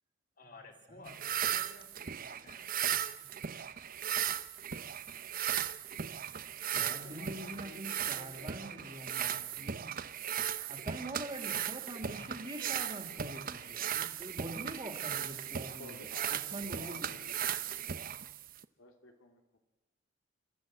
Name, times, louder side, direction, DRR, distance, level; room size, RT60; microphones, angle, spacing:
voice 1, 0.4-3.6 6.7-8.9 12.1-12.4, left 2 dB, 45° left, 6 dB, 2.9 m, -56 dB
sound 1, 1.1-18.6, right 9 dB, 45° right, 0.7 m, -37 dB
voice 2, 6.5-9.9 10.7-16.0 16.3-17.2, right 1 dB, 25° right, 5 dB, 2.5 m, -44 dB
voice 3, 15.8-17.4 18.8-19.6, left 2 dB, 85° left, 4 dB, 3.1 m, -53 dB
29.5 x 13.0 x 7.7 m, 1.0 s
head